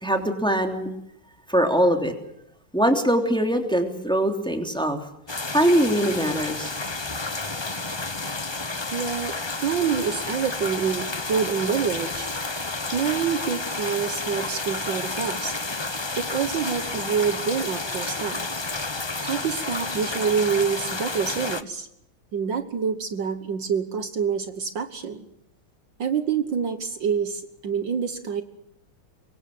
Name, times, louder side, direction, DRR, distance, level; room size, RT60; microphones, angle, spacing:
voice 1, 0.0-0.9 1.5-2.1 2.7-5.0 5.5-6.7, right 1 dB, ahead, 4 dB, 3.0 m, -22 dB
sound 1, 5.3-21.6, left 3 dB, 30° left, 0.5 m, -31 dB
voice 2, 8.9-9.3 9.6-12.3 12.9-15.5 16.2-18.4 19.2-21.9 22.3-25.3 26.0-28.4, right 7 dB, 60° right, 9 dB, 2.0 m, -26 dB
25.5 x 23.5 x 7.7 m, 0.79 s
omnidirectional pair, 2.3 m